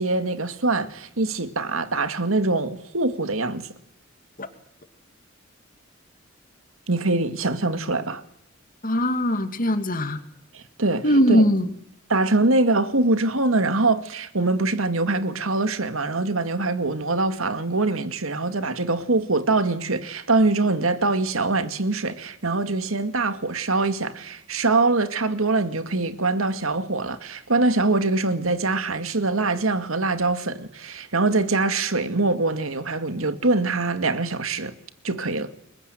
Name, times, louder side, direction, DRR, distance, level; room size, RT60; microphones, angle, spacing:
voice 1, 0.0-3.7 6.9-8.2 10.5-11.4 12.1-34.7 35.0-35.5, right 3 dB, 90° right, 2.3 m, -23 dB
voice 2, 8.8-10.2 11.0-11.7, equal, 45° left, 2.7 m, -20 dB
30.0 x 23.0 x 8.1 m
head